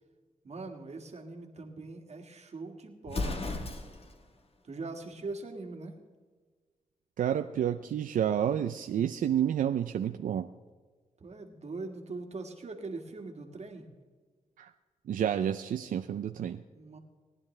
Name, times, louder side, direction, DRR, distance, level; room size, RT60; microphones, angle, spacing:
voice 1, 0.4-3.7 4.6-6.0 11.2-13.9 16.7-17.0, right 3 dB, 55° right, 3 dB, 1.8 m, -42 dB
Explosion, 3.0-4.2, left 3 dB, 45° left, 1.2 m, -34 dB
voice 2, 7.2-10.5 14.6-14.7 15.1-16.6, right 9 dB, 85° right, 8 dB, 0.4 m, -29 dB
18.5 x 10.5 x 3.3 m, 1.4 s
cardioid pair, 80°, 13 cm